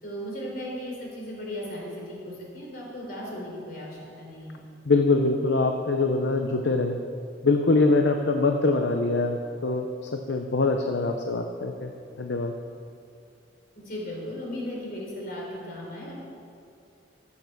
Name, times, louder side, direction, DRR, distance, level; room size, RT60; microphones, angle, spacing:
voice 1, 0.0-4.6 13.8-16.1, equal, 55° left, -3 dB, 3.9 m, -36 dB
voice 2, 4.9-7.0 7.4-9.9 10.1-11.9 12.2-12.5, left 3 dB, 70° left, 4 dB, 0.7 m, -23 dB
13.5 x 8.4 x 6.9 m, 2.5 s
head